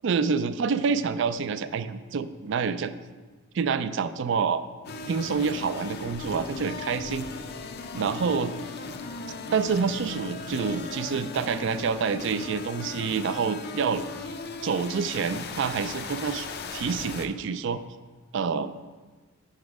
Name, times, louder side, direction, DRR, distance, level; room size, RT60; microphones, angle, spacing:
voice 1, 0.0-2.9 3.5-4.6 5.1-7.2 7.9-8.5 9.5-14.0 14.6-17.8 18.3-18.7, right 5 dB, 60° right, 13 dB, 0.4 m, -27 dB
sound 1, 4.8-17.3, left 3 dB, 50° left, 0.5 m, -37 dB
6.5 x 5.9 x 4.8 m, 1.3 s
head